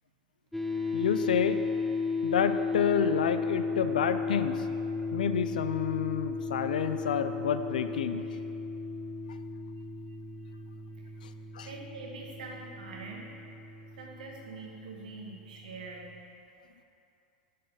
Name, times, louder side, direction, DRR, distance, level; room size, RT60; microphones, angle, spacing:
sound 1, 0.5-15.8, left 4 dB, 5° left, 0.5 m, -35 dB
voice 1, 0.9-1.6 2.2-4.7 5.1-8.2 11.2-11.3 11.5-11.7, left 7 dB, 75° left, 10 dB, 0.3 m, -29 dB
voice 2, 11.6-13.4 14.0-16.1, right 3 dB, 70° right, -1 dB, 1.3 m, -44 dB
7.5 x 4.0 x 5.4 m, 2.7 s
hypercardioid pair, 95°, 4 cm